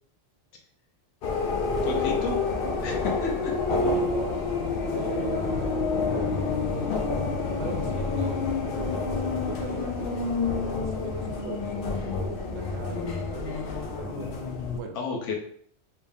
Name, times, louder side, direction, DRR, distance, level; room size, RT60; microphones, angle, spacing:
sound 1, 1.2-14.8, left 4 dB, 60° left, 0.7 m, -28 dB
voice 1, 1.8-2.4 2.8-3.5 14.9-15.3, left 3 dB, 90° left, 1 dB, 1.1 m, -31 dB
voice 2, 3.7-4.3 4.9-6.9 7.6-14.4 14.7-15.0, right 4 dB, 75° right, 4 dB, 0.9 m, -39 dB
3.4 x 3.1 x 2.7 m, 0.63 s
omnidirectional pair, 1.2 m